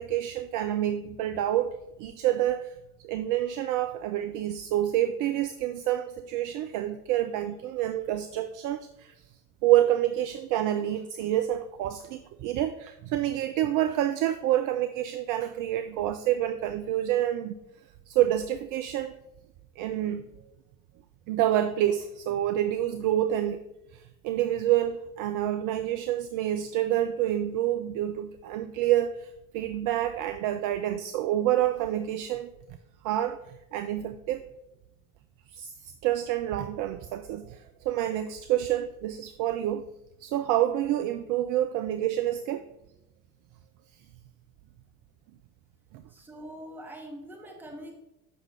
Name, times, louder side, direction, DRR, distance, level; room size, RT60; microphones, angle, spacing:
voice 1, 0.0-2.7 3.0-9.1 9.6-17.6 18.1-19.1 19.8-20.4 21.3-23.6 23.9-32.5 33.0-33.4 33.7-34.4 35.5-39.9 40.2-42.6 45.9-46.0, right 12 dB, 45° right, 10 dB, 0.4 m, -28 dB
voice 2, 46.1-48.0, equal, 5° right, 0 dB, 1.4 m, -43 dB
6.8 x 5.9 x 3.2 m, 0.90 s
figure-of-eight pair, 55°, 47 cm